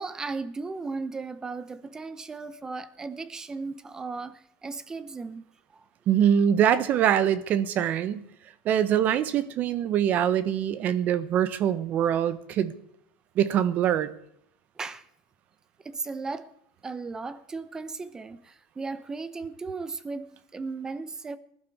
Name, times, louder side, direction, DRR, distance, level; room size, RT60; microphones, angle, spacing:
voice 1, 0.0-5.5 5.7-5.8 14.8-15.0 15.8-16.5 16.8-21.4, right 4 dB, 15° right, 15 dB, 0.9 m, -36 dB
voice 2, 6.1-8.3 8.6-12.7 13.3-14.1, right 9 dB, 40° right, 15 dB, 1.1 m, -24 dB
20.0 x 11.5 x 4.7 m, 0.76 s
supercardioid pair, 135°, 4 cm